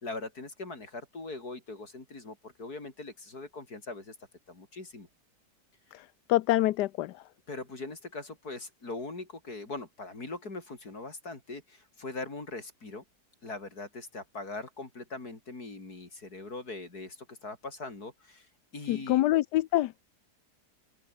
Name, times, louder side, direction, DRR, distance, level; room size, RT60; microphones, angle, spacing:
voice 1, 0.0-4.2 4.5-5.1 7.5-13.0 13.4-18.5 18.7-19.3, left 3 dB, 65° left, 5.3 m, -41 dB
voice 2, 6.3-7.1 18.9-20.0, left 15 dB, 80° left, 1.2 m, -25 dB
open air
omnidirectional pair, 1.8 m